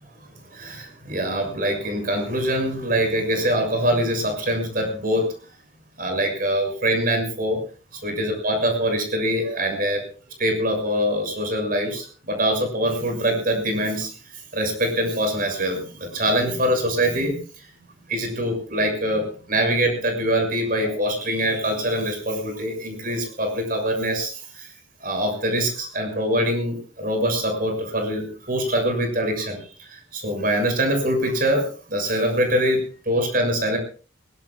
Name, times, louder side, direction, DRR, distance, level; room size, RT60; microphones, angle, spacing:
voice 1, 0.5-5.2 6.0-7.6 8.0-10.0 10.4-14.1 14.5-17.4 18.1-24.7 25.0-33.8, equal, 45° right, 5 dB, 6.7 m, -24 dB
22.5 x 20.0 x 2.4 m, 0.38 s
head